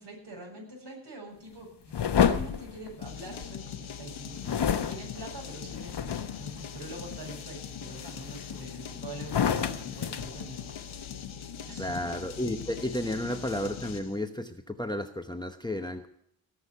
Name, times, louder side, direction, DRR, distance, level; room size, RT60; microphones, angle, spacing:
voice 1, 0.0-11.0 11.7-12.1, right 1 dB, 55° right, -1 dB, 7.8 m, -44 dB
sound 1, 1.9-3.6 4.4-6.5 7.0-7.4 8.0-8.8 9.2-11.1, left 8 dB, 55° left, 1.1 m, -29 dB
sound 2, 3.0-14.2, left 8 dB, 75° left, 1.3 m, -41 dB
voice 2, 11.8-16.1, left 1 dB, 10° left, 8 dB, 1.0 m, -32 dB
17.5 x 6.4 x 9.6 m, 0.69 s
cardioid pair, 70°, 48 cm